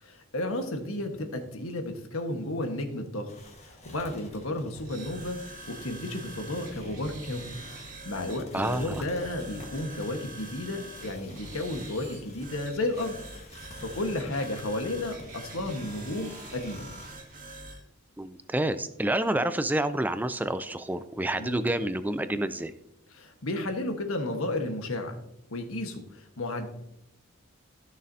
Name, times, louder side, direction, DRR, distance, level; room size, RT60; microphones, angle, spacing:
voice 1, 0.0-3.3 3.7-7.6 7.9-13.1 13.5-16.9 21.4-21.6 23.1-25.2 25.5-26.7, left 1 dB, 80° left, 5 dB, 1.4 m, -33 dB
sound 1, 3.3-17.3, left 2 dB, 30° left, 1.4 m, -50 dB
sound 2, 4.8-17.8, right 2 dB, 40° right, 1.8 m, -44 dB
voice 2, 8.5-9.0 18.2-22.7, right 1 dB, 10° right, 11 dB, 0.3 m, -28 dB
14.5 x 6.5 x 2.7 m, 0.80 s
head